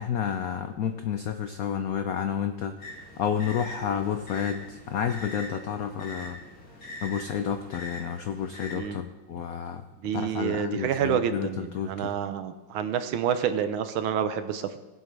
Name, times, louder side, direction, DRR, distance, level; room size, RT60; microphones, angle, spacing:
voice 1, 0.0-2.7 3.2-6.4 7.0-9.8 10.1-12.1, left 8 dB, 90° left, 8 dB, 0.7 m, -30 dB
sound 1, 2.8-8.8, left 1 dB, 40° left, 3.1 m, -43 dB
voice 2, 10.0-14.8, right 8 dB, 80° right, 10 dB, 1.6 m, -28 dB
19.0 x 7.9 x 3.4 m, 1.1 s
omnidirectional pair, 2.3 m